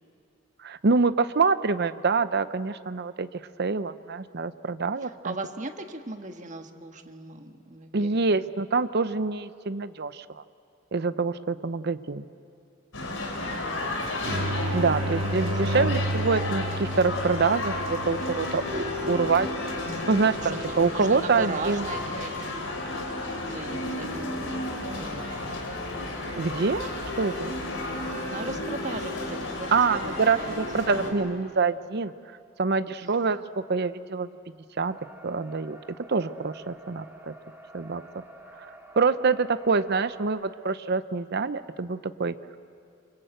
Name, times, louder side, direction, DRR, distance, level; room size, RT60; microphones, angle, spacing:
voice 1, 0.6-3.3 3.6-5.3 7.9-10.2 10.9-12.2 14.7-19.5 20.1-21.8 26.4-26.9 27.2-27.5 29.7-32.1 32.6-33.4 33.7-34.3 34.8-34.9 35.2-35.8 36.1-37.3 37.7-38.0 39.0-42.3, right 4 dB, 55° right, 13 dB, 0.7 m, -25 dB
voice 2, 5.0-8.4 13.4-13.8 15.7-16.1 20.4-22.7 23.4-24.6 25.0-25.4 28.1-30.7 33.0-33.2, right 3 dB, 40° right, 5 dB, 1.5 m, -38 dB
sound 1, 12.9-31.1, left 2 dB, 80° left, 4.2 m, -32 dB
sound 2, 14.3-19.8, right 1 dB, 75° right, 1.5 m, -32 dB
sound 3, 34.8-40.3, right 2 dB, 10° right, 2.2 m, -49 dB
27.5 x 24.5 x 8.0 m, 2.4 s
head